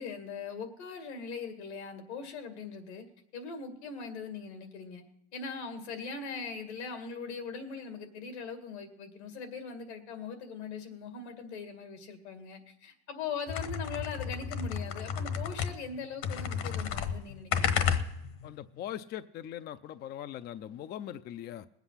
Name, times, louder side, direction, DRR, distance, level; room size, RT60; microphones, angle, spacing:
voice 1, 0.0-3.0 3.3-5.0 5.3-17.9, left 5 dB, 90° left, 7 dB, 2.2 m, -40 dB
sound 1, 13.5-16.0 16.2-18.5, left 7 dB, 60° left, 1.2 m, -32 dB
voice 2, 18.4-21.7, left 11 dB, 30° left, 12 dB, 0.4 m, -41 dB
20.0 x 8.1 x 5.7 m, 0.80 s
supercardioid pair, 115°, 33 cm